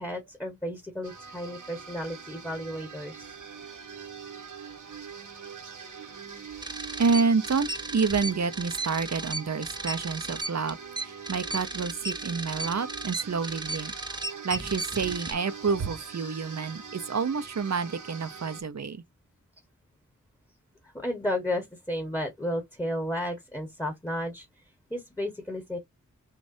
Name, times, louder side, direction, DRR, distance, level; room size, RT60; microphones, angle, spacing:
voice 1, 0.0-3.2 20.8-25.8, left 1 dB, 10° left, 1.4 m, -33 dB
sound 1, 1.0-18.6, right 6 dB, 80° right, 1.4 m, -43 dB
sound 2, 6.6-15.3, right 2 dB, 15° right, 0.4 m, -35 dB
voice 2, 7.0-10.8 11.0-13.9 14.4-19.0, right 5 dB, 60° right, 0.7 m, -28 dB
6.3 x 2.5 x 2.7 m
wide cardioid pair, 80°, 31 cm